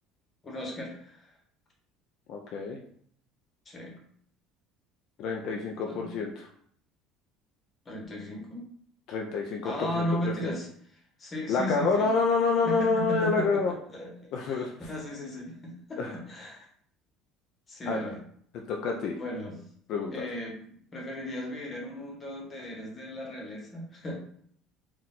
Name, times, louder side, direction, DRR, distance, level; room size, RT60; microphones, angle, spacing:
voice 1, 0.4-1.3 3.6-4.0 5.9-6.1 7.8-8.6 9.6-10.7 11.2-12.1 12.6-16.7 17.7-18.2 19.1-19.6 20.1-24.2, equal, 20° left, -1 dB, 1.1 m, -36 dB
voice 2, 2.3-2.8 5.2-6.5 9.1-10.5 11.5-13.7 14.3-14.7 16.0-16.2 17.9-18.1 18.7-19.2 19.9-20.3, left 4 dB, 55° left, 1 dB, 0.5 m, -28 dB
4.4 x 2.5 x 3.8 m, 0.62 s
cardioid pair, 150°, 0 cm